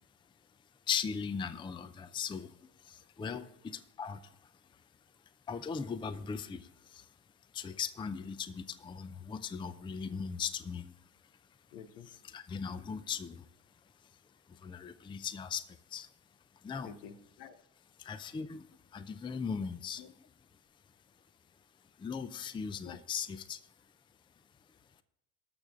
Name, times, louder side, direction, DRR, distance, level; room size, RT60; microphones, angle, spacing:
voice 1, 0.9-4.3 5.5-7.1 7.5-10.9 12.0-13.5 14.5-16.1 16.6-16.9 18.0-20.2 22.0-23.6, left 6 dB, 10° left, 14 dB, 0.5 m, -39 dB
voice 2, 3.2-3.5 11.7-12.1 16.8-17.6 20.0-20.1 22.8-23.0, left 8 dB, 75° left, 12 dB, 1.2 m, -49 dB
18.5 x 6.8 x 3.6 m, 0.89 s
hypercardioid pair, 80°, 47 cm